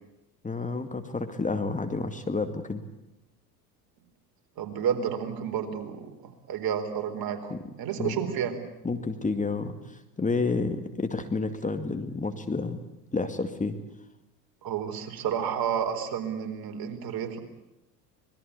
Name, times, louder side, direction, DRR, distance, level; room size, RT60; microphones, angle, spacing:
voice 1, 0.4-2.8 7.5-7.6 8.0-8.2 8.8-12.8 13.1-13.8, left 3 dB, 15° left, 7 dB, 2.2 m, -30 dB
voice 2, 4.6-7.5 7.8-8.5 14.6-17.4, right 8 dB, 45° right, 6 dB, 4.3 m, -30 dB
26.0 x 21.0 x 8.4 m, 0.92 s
hypercardioid pair, 75°, 48 cm